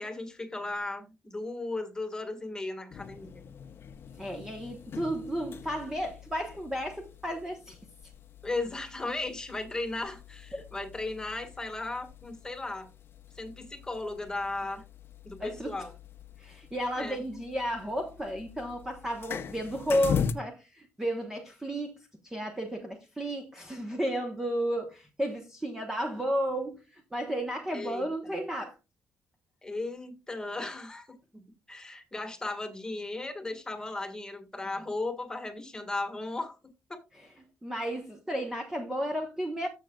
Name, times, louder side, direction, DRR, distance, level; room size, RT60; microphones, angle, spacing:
voice 1, 0.0-3.5 8.4-12.9 13.3-14.8 15.2-15.9 17.0-17.2 27.7-28.1 29.6-31.1 31.3-31.4 31.7-36.6 36.9-37.0, left 2 dB, 10° left, 1.5 m, -36 dB
sound 1, 2.9-20.3, left 7 dB, 45° left, 0.7 m, -41 dB
voice 2, 4.2-7.8 10.5-10.6 15.4-15.8 16.4-28.8 37.2-39.7, equal, 5° right, 1.0 m, -33 dB
14.0 x 6.5 x 2.3 m
cardioid pair, 155°, 5 cm